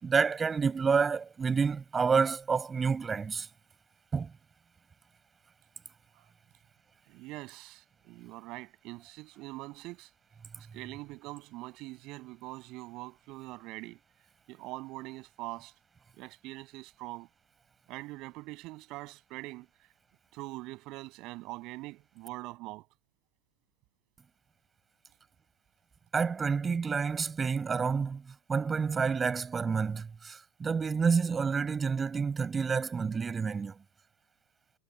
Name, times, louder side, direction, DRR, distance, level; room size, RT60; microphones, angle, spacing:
voice 1, 0.0-3.5 4.1-4.3 26.1-28.2 28.5-33.7, right 5 dB, 15° right, 5.3 m, -29 dB
voice 2, 7.1-10.1 10.7-14.0 14.5-15.7 16.2-17.3 17.9-19.7 20.3-22.9, right 20 dB, 40° right, 7.4 m, -43 dB
figure-of-eight pair, 90°, 0 cm